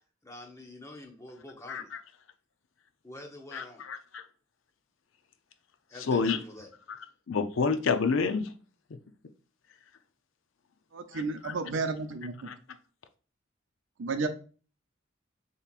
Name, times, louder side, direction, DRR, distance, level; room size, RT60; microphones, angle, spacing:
voice 1, 0.2-1.9 3.0-3.9 5.9-6.7, left 1 dB, 15° left, 1 dB, 0.8 m, -46 dB
voice 2, 3.5-4.2 6.1-6.4 7.3-8.5 8.9-9.0 11.1-11.6 12.4-12.5, left 5 dB, 90° left, 9 dB, 0.5 m, -29 dB
voice 3, 10.9-12.3 14.0-14.3, right 3 dB, 80° right, 8 dB, 0.5 m, -32 dB
6.8 x 2.9 x 2.4 m, 0.40 s
head